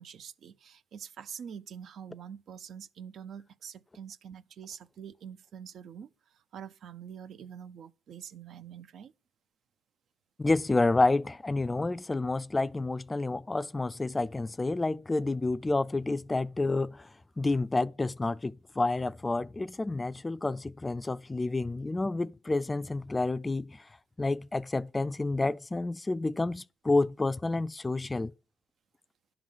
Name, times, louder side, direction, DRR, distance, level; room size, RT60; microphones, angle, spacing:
voice 1, 0.0-9.1, right 8 dB, 65° right, 0.5 m, -45 dB
voice 2, 10.4-17.1 17.4-23.9 24.2-28.3, left 2 dB, 20° left, 0.4 m, -29 dB
11.0 x 3.9 x 7.4 m
cardioid pair, 90°, 0 cm